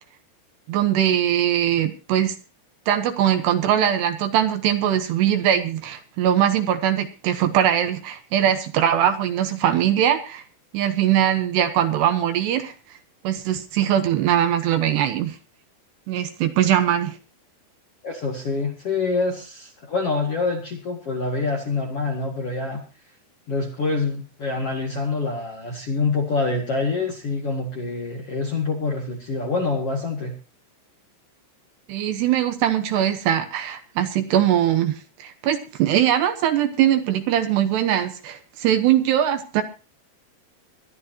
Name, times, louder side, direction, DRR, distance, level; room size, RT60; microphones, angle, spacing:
voice 1, 0.7-2.4 2.9-10.4 10.7-12.7 13.2-15.4 16.1-17.2 31.9-39.6, right 10 dB, 70° right, 8 dB, 2.9 m, -21 dB
voice 2, 18.0-22.8 23.5-30.3, left 3 dB, 45° left, 1 dB, 2.0 m, -26 dB
23.5 x 11.5 x 2.9 m, 0.34 s
omnidirectional pair, 5.5 m